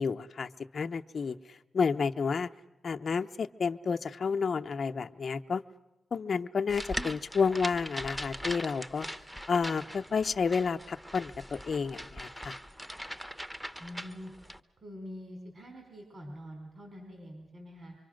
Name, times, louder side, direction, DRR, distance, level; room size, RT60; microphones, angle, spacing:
voice 1, 0.0-1.3 1.7-2.5 2.8-5.6 6.1-9.1 9.5-12.6, left 5 dB, 60° left, 6 dB, 0.8 m, -30 dB
sound 1, 6.7-14.6, equal, 5° right, 1.0 m, -41 dB
voice 2, 13.8-14.3 14.8-18.0, equal, 50° right, 2 dB, 4.6 m, -45 dB
25.0 x 25.0 x 6.5 m, 1.0 s
cardioid pair, 70°, 0 cm